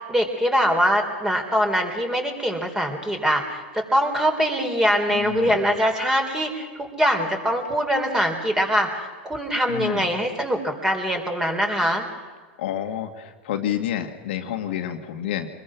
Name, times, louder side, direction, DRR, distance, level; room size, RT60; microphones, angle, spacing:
voice 1, 0.1-12.1, equal, 10° right, 3 dB, 4.0 m, -23 dB
voice 2, 5.1-5.6 9.7-10.1 12.6-15.5, left 10 dB, 70° left, 4 dB, 2.3 m, -29 dB
26.0 x 21.0 x 6.3 m, 1.4 s
hypercardioid pair, 120°, 6 cm